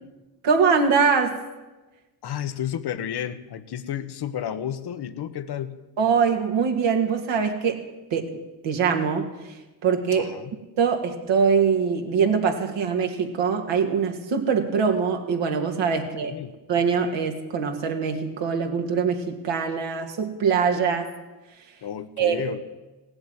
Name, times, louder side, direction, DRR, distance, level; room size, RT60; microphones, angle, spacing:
voice 1, 0.4-1.4 6.0-7.8 8.1-8.4 8.6-10.3 10.8-16.3 16.7-21.1 22.2-22.4, right 6 dB, 65° right, 3 dB, 2.4 m, -23 dB
voice 2, 2.2-5.8 10.2-10.5 16.2-16.6 21.8-22.6, left 9 dB, 55° left, 10 dB, 1.2 m, -32 dB
17.0 x 7.9 x 9.5 m, 1.1 s
hypercardioid pair, 55°, 47 cm